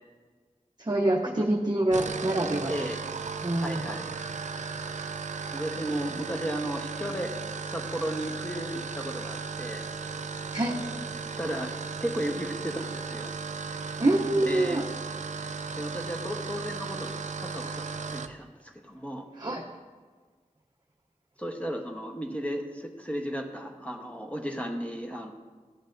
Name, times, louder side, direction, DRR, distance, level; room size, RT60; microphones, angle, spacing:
voice 1, 0.8-2.7 3.4-3.9 10.5-10.8 14.0-14.8 19.4-19.6, right 1 dB, 30° right, 0 dB, 0.7 m, -26 dB
sound 1, 1.8-18.4, right 5 dB, 65° right, 0.4 m, -36 dB
voice 2, 2.7-3.0 3.6-4.1 5.5-7.3 7.6-9.9 11.4-11.7 12.0-13.3 14.3-14.8 15.8-19.3 21.4-25.3, equal, 10° left, 2 dB, 1.0 m, -34 dB
13.0 x 7.9 x 2.6 m, 1.5 s
wide cardioid pair, 60°, 13 cm